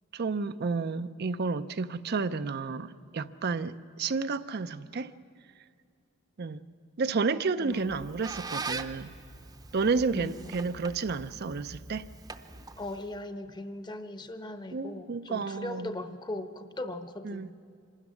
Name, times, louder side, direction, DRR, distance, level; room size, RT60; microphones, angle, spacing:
voice 1, 0.1-5.1 6.4-6.6 7.0-9.1 9.7-12.1 14.7-15.9 17.2-17.5, right 4 dB, 50° right, 0.5 m, -31 dB
voice 2, 7.6-8.1 10.1-10.6 12.8-17.5, left 1 dB, 20° left, 0.9 m, -39 dB
Squeak, 7.7-13.2, right 4 dB, 20° right, 0.7 m, -42 dB
25.0 x 13.0 x 9.7 m
head